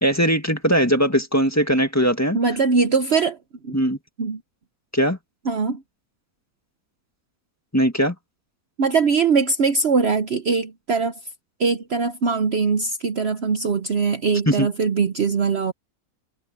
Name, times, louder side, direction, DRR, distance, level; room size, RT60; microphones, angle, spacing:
voice 1, 0.0-2.4 3.7-4.0 4.9-5.2 7.7-8.1 14.5-14.7, equal, 10° left, 1.7 m, -20 dB
voice 2, 2.3-3.4 3.6-3.8 4.2-4.4 5.4-5.8 8.8-11.1 11.6-15.7, right 4 dB, 50° right, 1.0 m, -21 dB
omnidirectional pair, 1.5 m